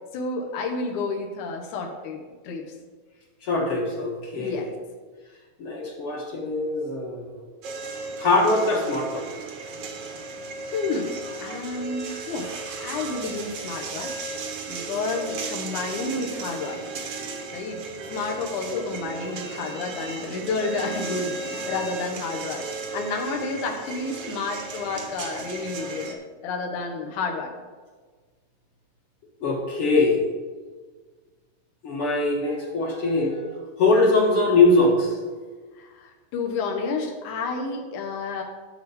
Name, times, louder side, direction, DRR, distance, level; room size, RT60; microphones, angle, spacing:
voice 1, 0.1-2.8 4.4-4.7 10.7-14.2 14.7-16.8 17.5-17.8 18.1-22.6 22.9-27.5 29.9-30.2 32.5-33.5 35.8-38.4, left 3 dB, 70° left, 1 dB, 2.7 m, -31 dB
voice 2, 3.4-4.7 5.6-7.3 8.2-9.3 18.7-18.8 29.4-30.3 31.8-33.4 33.8-35.2, left 2 dB, 50° left, -1 dB, 2.2 m, -22 dB
sound 1, 7.6-26.1, right 4 dB, 60° right, 1.9 m, -35 dB
12.0 x 4.5 x 7.0 m, 1.4 s
omnidirectional pair, 3.8 m